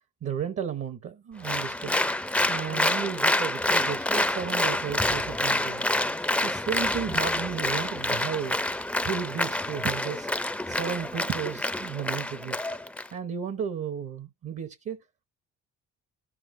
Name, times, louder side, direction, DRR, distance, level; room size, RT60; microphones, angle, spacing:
voice 1, 0.2-5.9 6.4-12.6 13.1-15.0, right 8 dB, 50° right, 1.0 m, -34 dB
Applause, 1.4-13.1, left 1 dB, 5° left, 0.5 m, -27 dB
13.5 x 5.8 x 2.6 m
cardioid pair, 90°, 30 cm